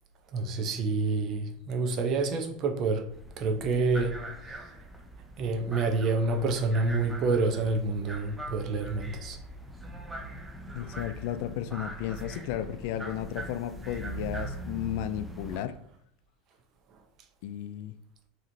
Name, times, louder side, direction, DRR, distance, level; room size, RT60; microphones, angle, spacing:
voice 1, 0.3-3.1 3.4-4.2 5.4-9.4, right 3 dB, 45° right, 0.7 m, -28 dB
sound 1, 3.1-15.6, right 1 dB, 10° right, 0.6 m, -41 dB
voice 2, 10.7-15.7 17.4-18.0, left 11 dB, 65° left, 0.3 m, -34 dB
5.0 x 3.0 x 2.7 m
supercardioid pair, 110°, 0 cm